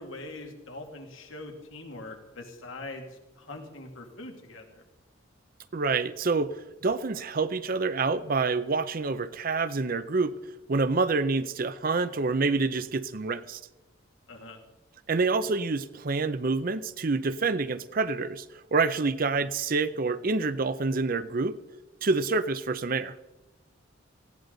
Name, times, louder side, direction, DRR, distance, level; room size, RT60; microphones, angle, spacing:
voice 1, 0.0-4.8 14.3-14.6, left 2 dB, 70° left, 4 dB, 2.3 m, -42 dB
voice 2, 5.7-6.5 6.8-10.3 10.7-13.6 15.1-18.4 18.7-21.6 22.0-23.1, right 4 dB, 45° right, 14 dB, 0.6 m, -27 dB
18.5 x 16.0 x 3.9 m, 1.1 s
head